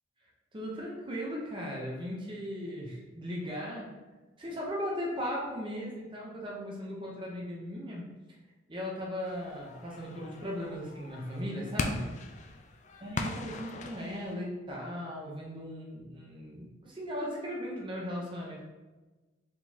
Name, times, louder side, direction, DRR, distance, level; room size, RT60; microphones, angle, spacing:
voice 1, 0.5-3.9 4.4-8.1 8.7-12.1 13.0-18.6, equal, 25° right, -3 dB, 0.7 m, -37 dB
sound 1, 9.2-14.3, left 3 dB, 35° left, 0.3 m, -39 dB
4.8 x 3.8 x 2.8 m, 1.2 s
head